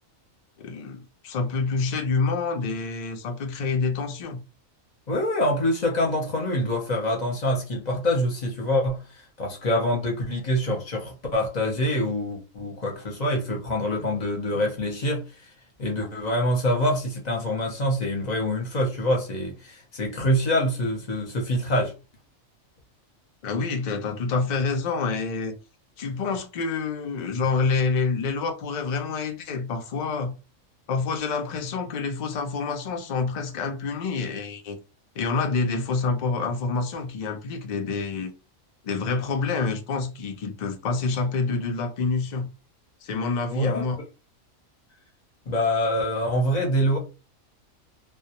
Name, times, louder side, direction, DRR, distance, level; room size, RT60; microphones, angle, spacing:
voice 1, 0.6-4.4 23.4-25.6 26.0-30.3 30.9-34.8 35.2-38.3 38.8-42.5 43.0-44.0, left 4 dB, 70° left, 0.4 m, -27 dB
voice 2, 5.1-9.0 9.4-15.2 15.8-21.9 43.5-43.9 45.5-47.0, equal, 40° left, 0.7 m, -25 dB
2.3 x 2.1 x 2.8 m
omnidirectional pair, 1.4 m